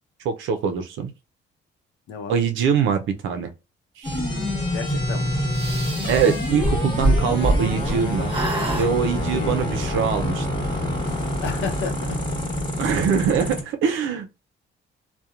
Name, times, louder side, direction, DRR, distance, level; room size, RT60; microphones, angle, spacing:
voice 1, 0.2-1.1 2.3-3.5 4.0-4.2 6.1-8.3 8.7-10.6 12.8-14.4, right 7 dB, 80° right, 0.5 m, -23 dB
sound 1, 4.0-13.6, left 1 dB, 25° left, 1.2 m, -26 dB
voice 2, 4.7-5.3 6.6-6.7 9.3-9.6 11.4-12.2, left 5 dB, 75° left, 0.7 m, -32 dB
sound 2, 5.5-8.0 8.3-8.9, right 1 dB, 25° right, 0.9 m, -24 dB
2.8 x 2.1 x 2.3 m
cardioid pair, 90°, 20 cm